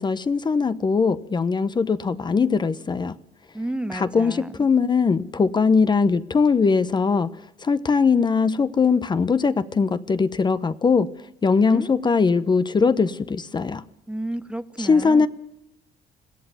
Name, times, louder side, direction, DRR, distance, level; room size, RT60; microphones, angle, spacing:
voice 1, 0.0-3.2 3.9-7.3 7.6-11.1 11.4-13.8 14.8-15.3, left 5 dB, 25° left, 0.8 m, -20 dB
voice 2, 3.5-4.7 11.5-11.9 14.1-15.3, right 1 dB, 5° right, 0.8 m, -31 dB
21.5 x 14.5 x 9.1 m
cardioid pair, 110°, 17 cm